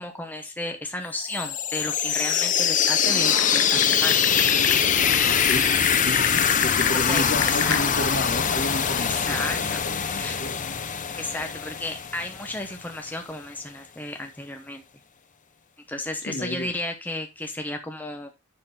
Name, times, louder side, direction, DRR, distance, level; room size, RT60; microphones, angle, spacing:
voice 1, 0.0-4.2 7.1-8.1 9.0-9.8 10.1-10.4 11.2-14.8 15.9-18.3, left 1 dB, 10° left, 4 dB, 0.9 m, -33 dB
sound 1, 1.2-12.9, left 7 dB, 40° left, 0.7 m, -23 dB
Typing, 3.0-7.8, left 8 dB, 80° left, 0.8 m, -31 dB
voice 2, 6.0-10.8 16.3-16.7, equal, 55° left, 5 dB, 1.9 m, -32 dB
7.7 x 5.9 x 4.2 m, 0.24 s
head